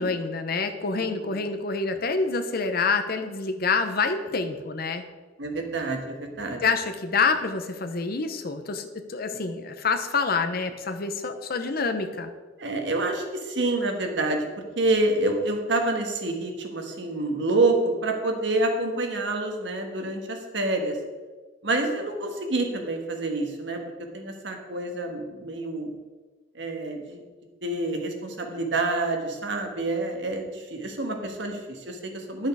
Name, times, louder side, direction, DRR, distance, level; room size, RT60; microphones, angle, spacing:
voice 1, 0.0-5.0 6.6-12.3, left 4 dB, 50° left, 8 dB, 0.8 m, -27 dB
voice 2, 0.9-1.4 5.4-6.6 12.6-14.5 14.8-21.0 21.6-23.8 24.1-25.9 26.5-27.2 27.6-32.5, right 2 dB, 65° right, 3 dB, 1.4 m, -27 dB
10.5 x 6.5 x 4.8 m, 1.4 s
head